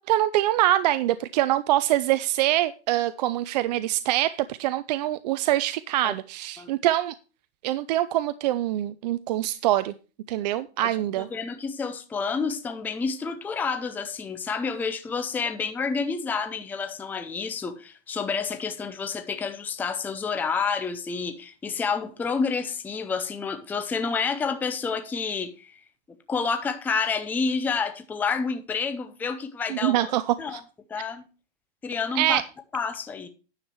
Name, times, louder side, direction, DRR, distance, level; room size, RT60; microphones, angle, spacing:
voice 1, 0.1-7.1 7.6-9.9 10.3-11.3 29.7-30.2 30.5-30.6 32.2-32.4, right 14 dB, 40° right, 0.5 m, -24 dB
voice 2, 10.8-25.8 26.3-30.1 30.4-30.6 30.9-31.2 31.8-32.4 32.7-33.3, left 5 dB, 5° left, 0.6 m, -29 dB
9.9 x 7.2 x 4.5 m
hypercardioid pair, 145°, 33 cm